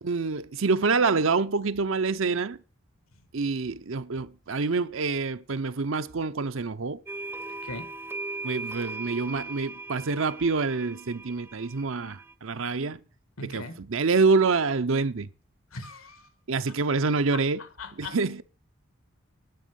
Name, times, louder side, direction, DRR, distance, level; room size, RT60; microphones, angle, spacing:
voice 1, 0.0-2.6 3.3-7.0 8.4-13.0 13.4-15.3 16.5-17.6 18.0-18.4, right 4 dB, 70° right, 0.7 m, -26 dB
sound 1, 7.1-12.3, right 2 dB, 10° right, 0.6 m, -39 dB
voice 2, 13.4-13.8 15.7-16.3 17.8-18.2, left 2 dB, 80° left, 2.1 m, -39 dB
11.5 x 7.2 x 6.9 m
head